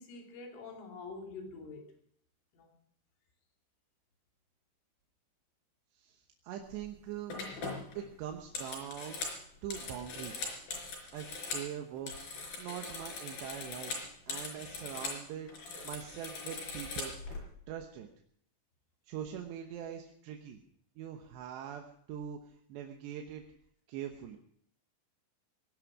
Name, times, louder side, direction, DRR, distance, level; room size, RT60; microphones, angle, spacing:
voice 1, 0.0-1.9 2.5-2.7, left 3 dB, 85° left, 2 dB, 5.5 m, -46 dB
voice 2, 6.0-7.4 8.0-9.2 9.6-10.5 11.1-13.9 14.3-17.4 17.7-18.1 19.1-20.6 21.0-22.4 22.7-23.4 23.9-24.4, right 9 dB, 70° right, 3 dB, 3.1 m, -43 dB
sound 1, 6.7-6.9 7.3-11.7 12.0-15.2 15.5-17.4, left 3 dB, 50° left, 6.0 m, -41 dB
19.0 x 11.5 x 6.1 m, 0.66 s
omnidirectional pair, 5.5 m